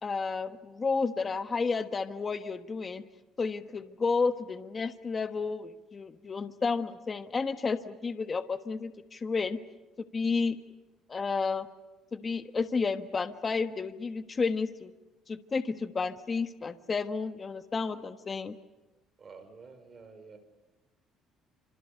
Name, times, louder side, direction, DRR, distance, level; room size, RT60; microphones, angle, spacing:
voice 1, 0.0-3.1 3.4-9.6 10.1-10.6 11.1-11.7 12.1-14.9 15.3-18.6, left 4 dB, 25° left, 10 dB, 1.2 m, -31 dB
voice 2, 19.2-20.4, right 4 dB, 30° right, 7 dB, 5.3 m, -50 dB
29.5 x 26.0 x 6.8 m, 1.1 s
cardioid pair, 120°, 0 cm